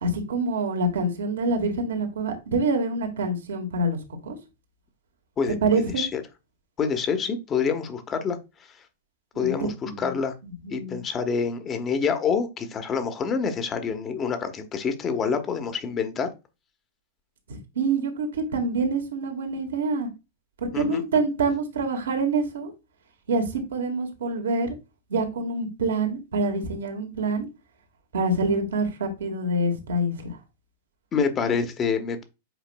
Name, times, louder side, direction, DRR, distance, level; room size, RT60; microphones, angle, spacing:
voice 1, 0.0-4.0 4.2-4.4 5.6-6.1 9.4-10.1 10.4-11.0 17.8-20.1 20.6-22.7 23.3-24.7 25.1-27.5 28.1-30.3, right 2 dB, 70° right, 1.8 m, -26 dB
voice 2, 6.8-8.4 9.4-10.3 10.7-16.3 20.7-21.0 31.1-32.2, left 6 dB, 30° left, 1.3 m, -27 dB
8.0 x 5.0 x 2.3 m
figure-of-eight pair, 100°, 0 cm